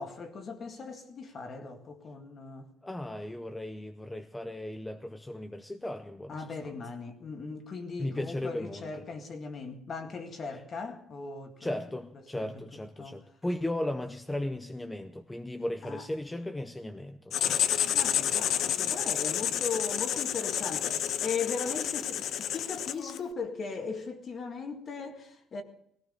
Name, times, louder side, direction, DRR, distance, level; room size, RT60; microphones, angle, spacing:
voice 1, 0.0-2.7 6.3-11.7 12.3-12.6 13.0-13.2 15.8-16.1 17.9-25.6, left 5 dB, 35° left, 2.0 m, -38 dB
voice 2, 2.8-6.4 6.6-6.7 8.0-8.9 11.6-17.6, left 1 dB, 10° left, 0.7 m, -36 dB
Writing, 17.3-23.3, left 10 dB, 55° left, 0.6 m, -30 dB
20.0 x 17.5 x 4.0 m
cardioid pair, 145°, 0 cm